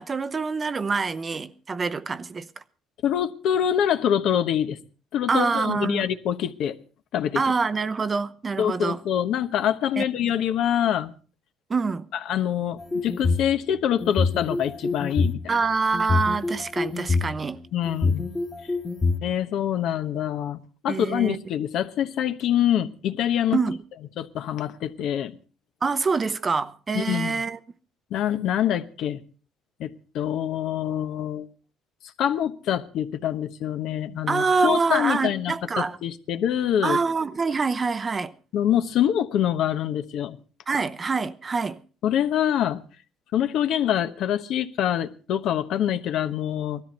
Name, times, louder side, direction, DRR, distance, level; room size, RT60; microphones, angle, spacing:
voice 1, 0.0-2.5 5.3-6.1 7.3-9.0 10.0-10.3 11.7-12.1 15.5-17.6 20.9-21.4 23.5-23.8 25.8-27.6 34.3-36.0 36.8-38.3 40.7-41.8, right 4 dB, 30° right, 0.7 m, -25 dB
voice 2, 3.0-4.8 5.1-6.8 7.1-7.4 8.6-11.1 12.3-15.6 17.7-18.2 19.2-23.6 24.2-25.4 26.9-27.4 28.1-29.2 29.8-31.5 32.2-37.0 38.5-40.4 42.0-42.8 43.3-46.8, left 10 dB, 65° left, 1.0 m, -25 dB
sound 1, 12.8-13.5 14.0-15.4 15.9-17.2 17.8-19.1, left 4 dB, 25° left, 1.6 m, -24 dB
19.0 x 13.5 x 4.3 m
cardioid pair, 105°, 0 cm